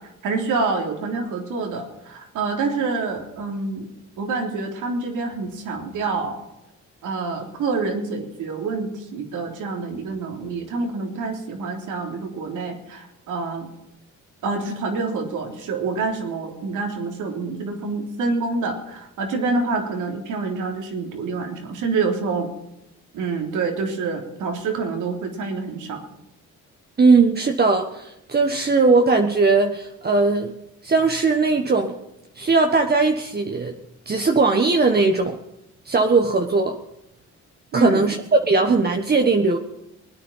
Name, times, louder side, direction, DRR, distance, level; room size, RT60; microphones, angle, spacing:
voice 1, 0.0-3.9 4.2-6.4 7.0-13.7 14.4-22.5 23.1-26.0 37.7-38.1, right 4 dB, 80° right, 3 dB, 3.6 m, -27 dB
voice 2, 27.0-30.5 30.8-31.9 32.4-33.7 34.1-35.4 35.8-36.8 37.7-39.6, right 3 dB, 30° right, 4 dB, 1.4 m, -19 dB
20.5 x 10.0 x 5.7 m, 0.89 s
cardioid pair, 90°, 30 cm